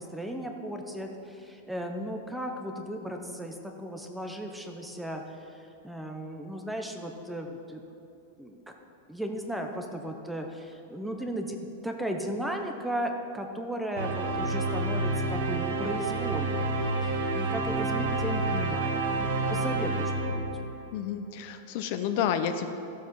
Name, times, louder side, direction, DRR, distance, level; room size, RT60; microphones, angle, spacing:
voice 1, 0.0-7.8 8.4-8.6 9.1-16.7 17.1-20.4, equal, ahead, 3 dB, 0.6 m, -36 dB
sound 1, 14.0-21.0, right 2 dB, 80° right, 1.4 m, -29 dB
voice 2, 20.9-22.7, left 8 dB, 40° left, 8 dB, 0.6 m, -30 dB
14.5 x 7.3 x 4.6 m, 2.8 s
supercardioid pair, 175°, 0 cm